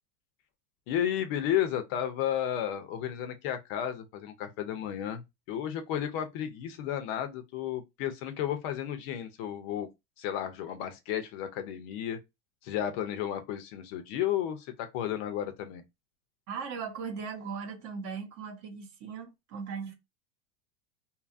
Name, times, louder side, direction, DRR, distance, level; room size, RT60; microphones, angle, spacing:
voice 1, 0.9-9.9 10.2-12.2 12.6-15.8, left 10 dB, 45° left, 0.5 m, -33 dB
voice 2, 16.5-19.9, right 6 dB, 45° right, 0.8 m, -38 dB
2.7 x 2.4 x 2.4 m
supercardioid pair, 145°, 43 cm